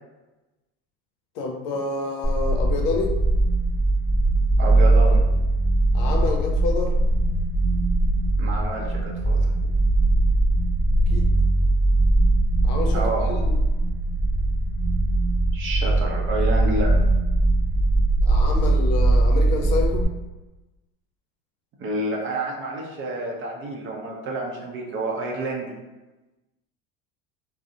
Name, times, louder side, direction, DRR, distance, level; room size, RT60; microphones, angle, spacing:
voice 1, 1.4-3.1 5.9-6.9 11.1-11.3 12.6-13.5 18.3-20.1, left 3 dB, 60° left, 2 dB, 0.6 m, -28 dB
sound 1, 2.2-20.0, right 2 dB, 15° left, 0.7 m, -20 dB
voice 2, 4.6-5.2 8.4-9.4 12.9-13.4 15.5-16.9 21.8-25.7, right 2 dB, 40° right, -1 dB, 0.6 m, -29 dB
2.4 x 2.1 x 2.6 m, 1.1 s
supercardioid pair, 100°, 31 cm